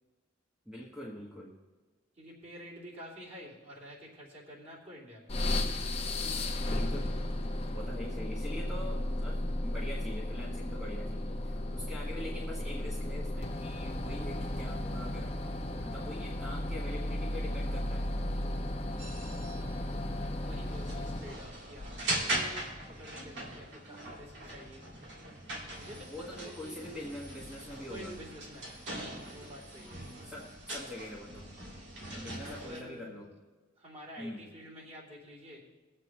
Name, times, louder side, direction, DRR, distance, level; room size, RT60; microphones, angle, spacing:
voice 1, 0.6-1.5 6.7-7.1 7.7-15.3 15.8-18.1 26.1-28.2 30.2-31.5 32.1-33.3 34.2-34.4, left 1 dB, 5° right, -4 dB, 1.2 m, -44 dB
voice 2, 2.2-5.3 20.4-21.8 22.3-24.9 25.7-26.8 27.9-28.8 29.3-30.0 32.3-33.2 33.8-35.7, equal, 35° right, -6 dB, 3.1 m, -49 dB
sound 1, 5.3-21.4, left 1 dB, 35° left, 0.9 m, -34 dB
sound 2, 19.0-32.8, right 1 dB, 70° right, 2.4 m, -41 dB
20.5 x 7.7 x 3.2 m, 1.3 s
head